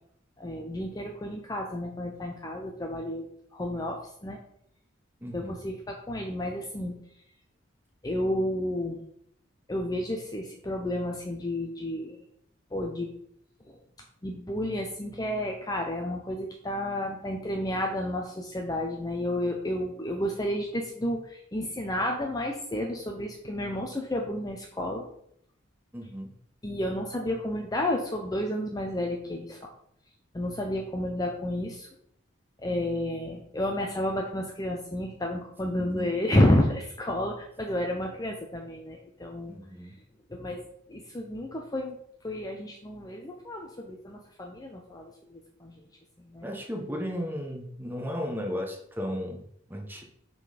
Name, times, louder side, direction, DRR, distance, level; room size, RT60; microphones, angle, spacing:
voice 1, 0.4-4.4 5.3-6.9 8.0-9.0 9.7-12.2 12.7-13.1 13.7-13.8 14.2-25.1 26.6-29.7 30.3-31.9 32.6-39.5 40.3-42.0 42.2-45.8 46.2-46.5, left 1 dB, 20° left, 2 dB, 0.5 m, -31 dB
voice 2, 5.2-5.6 25.9-26.3 35.8-36.1 39.5-39.9 46.4-49.4 49.7-50.0, equal, 10° right, 1 dB, 0.9 m, -35 dB
5.9 x 3.8 x 5.0 m, 0.71 s
head